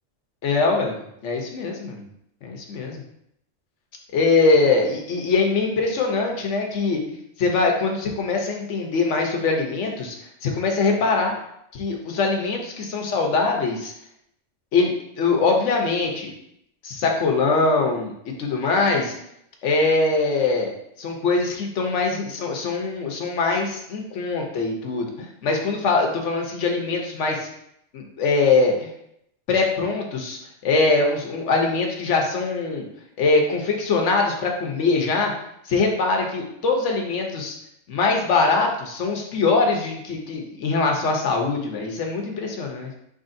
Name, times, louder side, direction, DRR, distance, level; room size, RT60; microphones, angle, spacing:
voice 1, 0.4-2.0 2.4-3.0 4.1-7.0 7.4-10.2 10.4-11.3 11.7-13.9 14.7-16.3 16.8-19.1 19.6-20.7 21.0-27.5 27.9-28.9 29.5-32.8 33.2-35.3 35.7-37.5 37.9-42.9, left 3 dB, 75° left, 1 dB, 1.1 m, -22 dB
4.7 x 3.8 x 2.6 m, 0.76 s
omnidirectional pair, 1.2 m